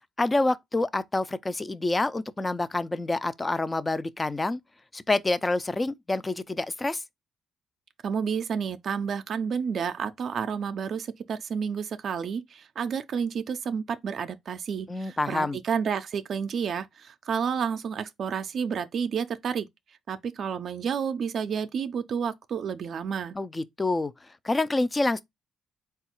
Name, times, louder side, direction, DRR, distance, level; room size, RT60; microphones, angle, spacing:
voice 1, 0.2-4.6 4.9-7.0 14.9-15.6 23.4-24.1 24.4-25.2, left 2 dB, 20° left, 0.4 m, -27 dB
voice 2, 8.0-19.7 20.1-23.4, right 6 dB, 60° right, 0.4 m, -30 dB
3.9 x 2.3 x 4.3 m
cardioid pair, 90°, 0 cm